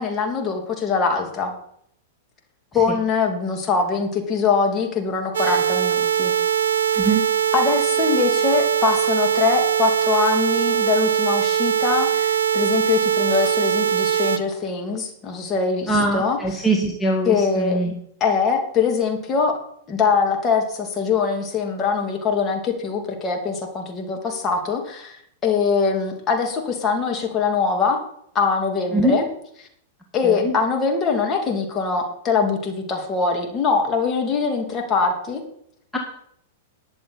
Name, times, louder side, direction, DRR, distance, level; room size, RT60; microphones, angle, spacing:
voice 1, 0.0-1.5 2.7-6.4 7.5-16.7 17.2-17.8 18.2-19.6 19.9-25.2 25.4-28.0 28.3-29.2 30.1-35.4, left 5 dB, 25° left, 2 dB, 2.8 m, -22 dB
sound 1, 5.3-14.4, right 9 dB, 70° right, 0.7 m, -21 dB
voice 2, 15.9-17.9 28.9-29.1 30.2-30.5 35.9-36.0, right 2 dB, 5° left, -1 dB, 1.8 m, -22 dB
20.5 x 7.0 x 4.3 m, 0.69 s
figure-of-eight pair, 100°, 0 cm